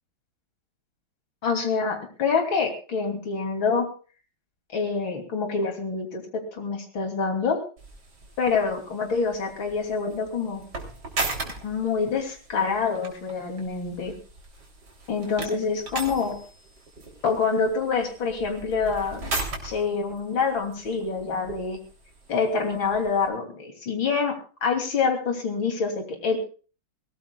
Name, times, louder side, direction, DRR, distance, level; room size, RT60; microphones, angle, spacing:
voice 1, 1.4-3.9 4.7-7.6 8.4-10.6 11.6-14.1 15.1-16.4 17.2-19.3 19.6-21.8 22.3-26.4, left 5 dB, 80° left, 4 dB, 3.7 m, -26 dB
sound 1, 7.8-23.3, right 3 dB, 55° right, 3.9 m, -38 dB
22.5 x 18.0 x 2.4 m, 0.38 s
omnidirectional pair, 2.1 m